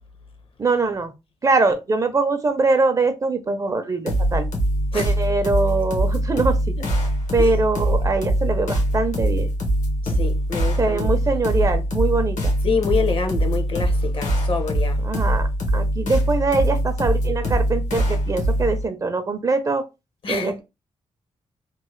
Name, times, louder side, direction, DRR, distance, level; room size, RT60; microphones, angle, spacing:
voice 1, 0.6-1.1 1.4-4.5 4.9-6.7 7.3-9.5 10.8-12.5 15.0-15.5 15.7-19.8 20.3-20.6, right 3 dB, 25° right, 0.5 m, -22 dB
sound 1, 4.1-18.8, right 1 dB, 75° left, 1.0 m, -22 dB
voice 2, 10.0-11.2 12.6-15.0 20.2-20.5, left 5 dB, 45° left, 0.6 m, -26 dB
3.0 x 2.1 x 3.0 m
wide cardioid pair, 130°, 12 cm